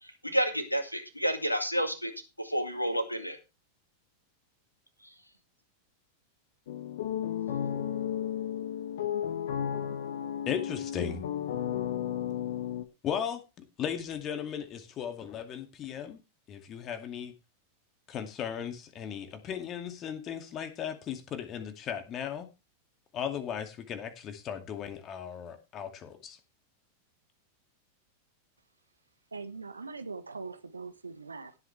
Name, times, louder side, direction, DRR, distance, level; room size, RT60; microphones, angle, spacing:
voice 1, 0.0-2.1 2.4-3.4 5.0-5.1, equal, 90° left, 2.1 m, -30 dB
sound 1, 6.7-12.8, left 9 dB, 60° left, 1.5 m, -33 dB
voice 2, 10.5-11.2 13.0-16.2 16.5-17.3 18.1-22.5 23.1-26.4, left 8 dB, 30° left, 2.3 m, -36 dB
voice 3, 29.3-31.6, right 4 dB, 80° right, 1.3 m, -41 dB
17.0 x 8.2 x 3.3 m
figure-of-eight pair, 90°, 0 cm